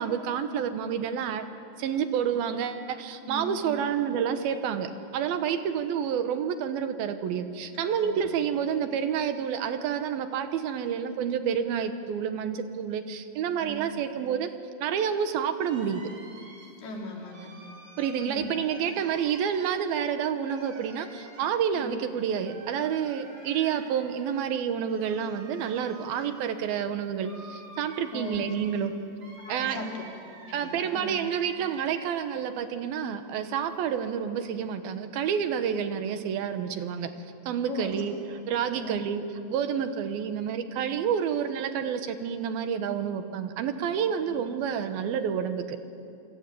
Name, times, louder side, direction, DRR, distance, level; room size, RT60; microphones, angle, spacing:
voice 1, 0.0-1.5 1.8-14.5 14.8-16.0 18.0-28.9 29.5-29.9 30.5-37.1 37.5-38.2 38.5-45.8, right 8 dB, 75° right, 8 dB, 2.9 m, -29 dB
voice 2, 3.2-3.8 7.7-8.3 13.6-13.8 16.8-17.5 18.2-18.5 21.7-21.9 28.1-28.4 29.4-31.2 37.7-37.9 38.8-39.0, left 1 dB, 75° left, -1 dB, 5.8 m, -39 dB
sound 1, 15.6-32.3 32.6-33.8, right 3 dB, 40° right, 3.7 m, -50 dB
26.5 x 25.0 x 8.5 m, 2.6 s
omnidirectional pair, 4.5 m